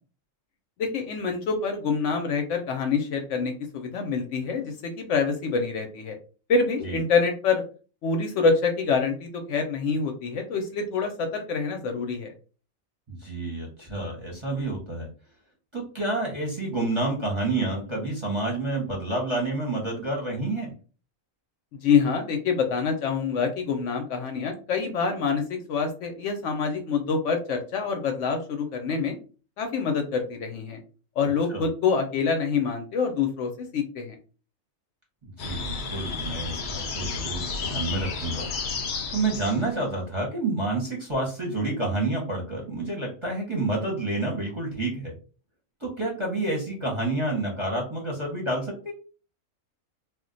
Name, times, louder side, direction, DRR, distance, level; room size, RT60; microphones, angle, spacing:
voice 1, 0.8-6.2 6.5-7.6 8.0-12.3 21.8-29.2 29.6-30.8 31.2-34.1, left 5 dB, 70° left, 4 dB, 0.8 m, -26 dB
voice 2, 13.1-15.1 15.7-20.7 31.5-31.6 35.2-38.5 39.1-45.1 45.8-48.9, right 2 dB, 25° right, -2 dB, 0.8 m, -29 dB
sound 1, 35.4-39.8, left 4 dB, 85° left, 0.4 m, -32 dB
2.4 x 2.1 x 3.8 m, 0.37 s
omnidirectional pair, 1.4 m